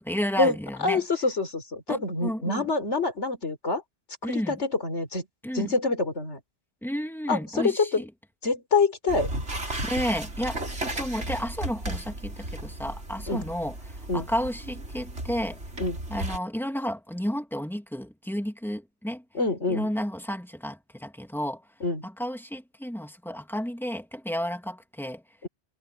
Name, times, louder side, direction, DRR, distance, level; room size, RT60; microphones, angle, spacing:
voice 1, 0.0-1.0 1.9-2.7 4.2-4.6 5.4-5.7 6.8-8.1 9.8-15.6 16.1-19.2 19.7-21.6 22.0-25.2, equal, ahead, 2.4 m, -32 dB
voice 2, 0.8-3.8 4.2-5.3 5.5-6.4 7.3-8.0 8.4-9.3 13.3-13.4 14.1-14.3 15.8-16.0 19.3-19.9 21.8-22.1 25.4-25.5, left 3 dB, 85° left, 4.2 m, -26 dB
sound 1, 9.1-16.4, right 1 dB, 85° right, 5.0 m, -35 dB
omnidirectional pair, 1.2 m